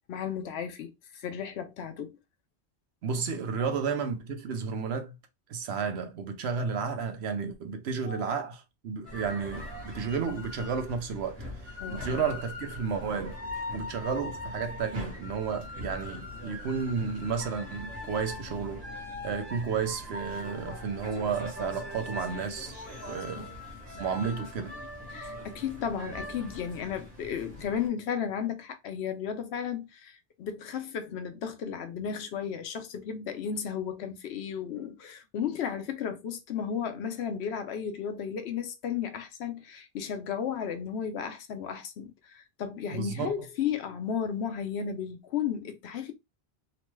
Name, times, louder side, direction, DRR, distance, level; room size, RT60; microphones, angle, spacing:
voice 1, 0.1-2.2 3.6-3.8 8.1-8.3 11.8-12.3 23.3-23.5 25.1-46.1, left 8 dB, 80° left, 0.9 m, -34 dB
voice 2, 3.0-5.1 5.5-11.4 11.9-13.4 13.7-18.8 19.2-22.7 23.1-23.5 24.0-24.7 42.9-43.3, right 6 dB, 75° right, 0.9 m, -32 dB
sound 1, 9.0-27.9, left 2 dB, 50° right, 1.3 m, -41 dB
3.0 x 2.2 x 3.1 m
omnidirectional pair, 1.1 m